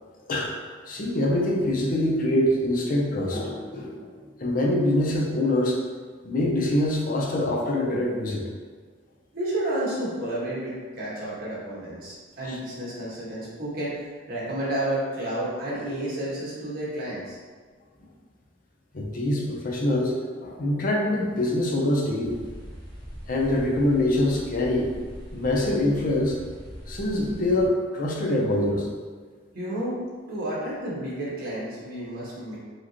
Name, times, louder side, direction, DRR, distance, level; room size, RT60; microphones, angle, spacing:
voice 1, 0.9-4.1 4.4-5.8 6.2-8.5 12.4-12.6 18.9-22.3 23.3-24.9 25.3-26.4 26.9-28.9, left 1 dB, 50° left, -1 dB, 0.6 m, -24 dB
voice 2, 9.3-17.4 29.5-30.0 30.3-32.6, right 1 dB, 55° right, -7 dB, 1.4 m, -31 dB
sound 1, 22.2-27.7, equal, 25° left, 1.3 m, -42 dB
4.8 x 3.0 x 2.9 m, 1.5 s
head